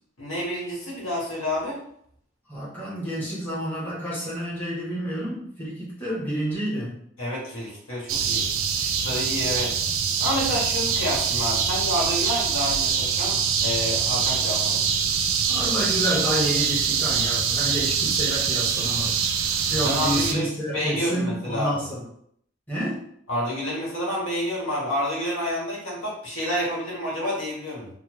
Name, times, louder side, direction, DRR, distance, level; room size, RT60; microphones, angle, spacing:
voice 1, 0.2-1.8 7.2-8.5 8.8-9.7 10.2-14.8 19.7-21.8 23.3-27.9, left 1 dB, 75° left, -5 dB, 1.3 m, -29 dB
voice 2, 2.5-7.0 15.5-19.2 19.7-22.1 22.7-23.0, equal, 10° left, -9 dB, 1.1 m, -29 dB
sound 1, 8.1-20.3, right 6 dB, 80° right, 0.4 m, -24 dB
3.1 x 2.1 x 3.0 m, 0.67 s
head